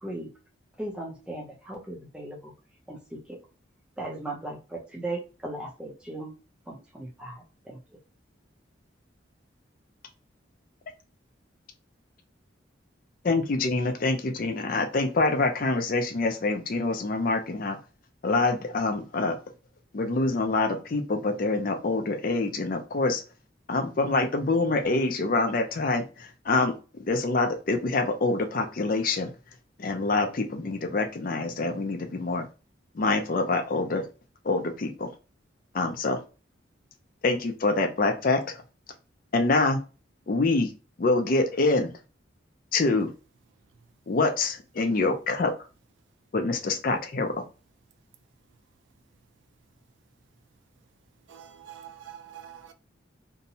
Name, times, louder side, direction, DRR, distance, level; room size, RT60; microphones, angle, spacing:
voice 1, 0.8-2.5 2.9-3.4 4.0-6.3 6.7-7.8, right 2 dB, 5° right, 0.5 m, -37 dB
voice 2, 13.2-17.8 18.2-19.4 19.9-23.2 23.7-26.7 27.1-29.3 29.8-32.5 32.9-34.1 34.4-35.1 35.7-36.2 37.2-38.6 39.3-39.8 40.3-40.7 41.0-41.9 42.7-43.1 44.1-45.5 46.3-47.3, left 3 dB, 45° left, 0.4 m, -25 dB
voice 3, 51.3-52.7, right 10 dB, 75° right, 0.4 m, -45 dB
2.6 x 2.1 x 2.7 m
head